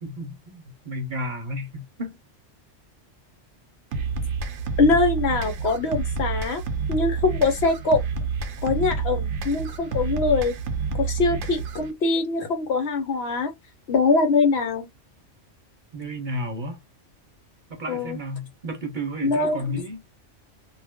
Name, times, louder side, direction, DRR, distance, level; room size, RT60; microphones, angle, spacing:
voice 1, 0.0-2.1 15.9-16.8 17.7-20.0, equal, 45° right, 0.8 m, -32 dB
sound 1, 3.9-11.9, right 5 dB, 75° right, 0.9 m, -29 dB
voice 2, 4.8-6.6 6.9-8.0 8.6-10.6 10.9-13.5 13.9-14.9 17.9-18.2 19.2-19.8, left 3 dB, 65° left, 1.0 m, -23 dB
2.4 x 2.1 x 3.5 m
omnidirectional pair, 1.2 m